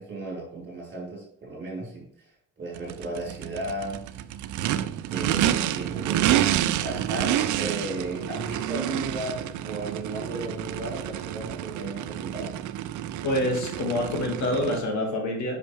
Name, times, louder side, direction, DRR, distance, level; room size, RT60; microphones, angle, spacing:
voice 1, 0.0-4.0 5.1-6.4 6.8-12.6, right 2 dB, 40° right, -3 dB, 3.5 m, -35 dB
Race car auto racing / Idling / Accelerating revving vroom, 2.8-14.8, right 12 dB, 80° right, 0.5 m, -28 dB
voice 2, 13.2-15.6, left 1 dB, 70° left, 2 dB, 2.1 m, -26 dB
8.4 x 5.8 x 3.3 m, 0.65 s
cardioid pair, 155°, 30 cm